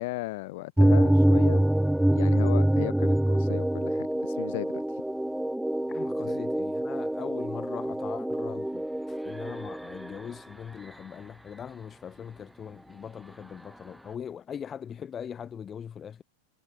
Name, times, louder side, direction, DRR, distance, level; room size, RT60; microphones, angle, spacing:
voice 1, 0.0-1.6 2.1-5.0 6.3-6.4, left 21 dB, 50° left, 6.0 m, -36 dB
sound 1, 0.8-10.2, right 1 dB, 5° right, 0.9 m, -25 dB
voice 2, 5.9-16.2, left 8 dB, 25° left, 2.6 m, -40 dB
figure-of-eight pair, 90°, 0 cm